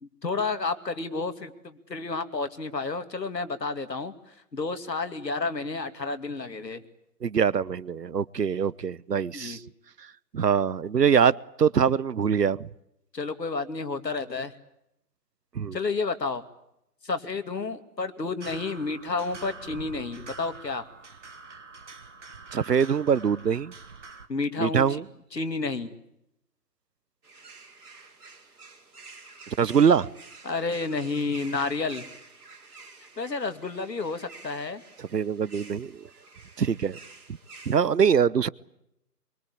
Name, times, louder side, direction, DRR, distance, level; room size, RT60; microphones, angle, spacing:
voice 1, 0.0-6.8 9.3-9.6 13.1-14.5 15.7-16.4 17.0-20.9 24.3-25.0 25.3-25.9 30.4-32.1 33.2-34.8, left 3 dB, 90° left, 2.6 m, -31 dB
voice 2, 7.2-9.6 10.3-12.7 15.5-15.8 22.5-23.7 24.6-25.0 29.6-30.1 35.1-36.1 36.6-37.0 37.7-38.5, right 7 dB, 80° right, 1.0 m, -23 dB
sound 1, 18.4-24.3, right 4 dB, 45° right, 1.8 m, -45 dB
sound 2, 27.2-37.8, right 4 dB, 65° right, 5.5 m, -49 dB
24.0 x 23.5 x 8.6 m
hypercardioid pair, 170°, 48 cm